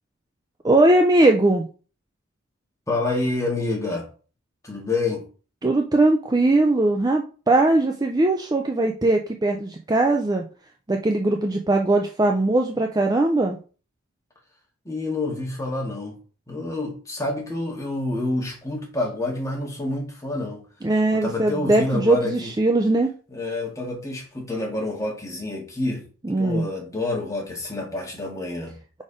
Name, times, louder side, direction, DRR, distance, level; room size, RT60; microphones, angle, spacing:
voice 1, 0.6-1.7 5.6-10.5 10.9-13.6 20.8-23.1 26.2-26.6, right 2 dB, 15° right, 3 dB, 0.4 m, -20 dB
voice 2, 2.9-4.1 4.6-5.2 14.9-16.2 16.5-20.6 21.1-22.5 23.3-26.0 26.4-28.8, left 2 dB, 15° left, -1 dB, 1.9 m, -28 dB
5.0 x 4.3 x 4.9 m, 0.37 s
head